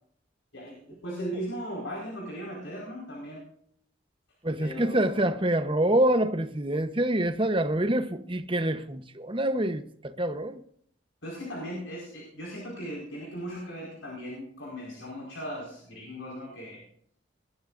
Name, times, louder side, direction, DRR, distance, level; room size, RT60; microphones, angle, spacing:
voice 1, 0.5-3.4 4.6-5.3 11.2-16.8, equal, 75° left, 4.7 m, -38 dB
voice 2, 4.4-10.6, right 1 dB, 25° right, 0.9 m, -26 dB
21.0 x 13.5 x 2.6 m
head